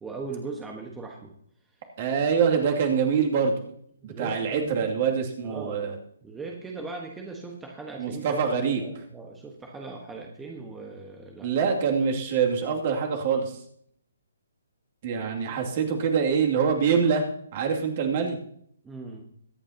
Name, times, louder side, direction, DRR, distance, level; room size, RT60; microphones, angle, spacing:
voice 1, 0.0-1.3 4.0-5.0 5.4-5.9 6.2-8.2 8.7-11.5 18.8-19.2, right 3 dB, 10° right, 1 dB, 1.3 m, -39 dB
voice 2, 2.0-3.6 4.0-5.9 8.0-8.8 11.4-13.6 15.0-18.4, right 6 dB, 40° right, 1 dB, 2.5 m, -25 dB
22.5 x 8.9 x 2.9 m, 0.66 s
figure-of-eight pair, 135°, 0 cm